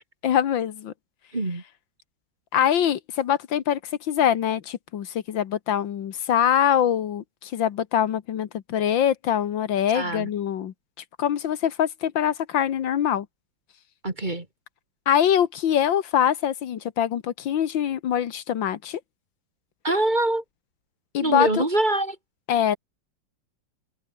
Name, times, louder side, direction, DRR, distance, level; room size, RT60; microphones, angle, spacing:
voice 1, 0.2-0.9 2.5-3.8 4.1-10.7 11.2-13.3 15.1-19.0 21.1-21.6 22.5-22.8, left 9 dB, 75° left, 1.9 m, -23 dB
voice 2, 1.3-1.6 9.9-10.3 14.0-14.5 19.8-20.4 21.2-22.2, right 2 dB, 25° right, 2.7 m, -24 dB
omnidirectional pair, 2.1 m